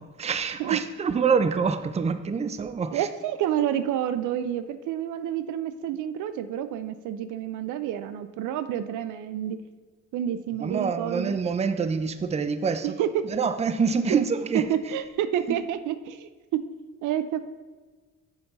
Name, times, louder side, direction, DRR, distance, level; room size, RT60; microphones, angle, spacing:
voice 1, 0.0-3.1 10.6-12.9 13.3-14.6 15.5-15.6, right 5 dB, 20° right, 11 dB, 0.4 m, -26 dB
voice 2, 2.9-9.6 10.1-11.3 12.8-13.3 14.1-14.2 14.5-16.7 17.0-17.4, right 10 dB, 85° right, 12 dB, 0.5 m, -29 dB
7.0 x 5.2 x 4.0 m, 1.4 s
cardioid pair, 90°, 30 cm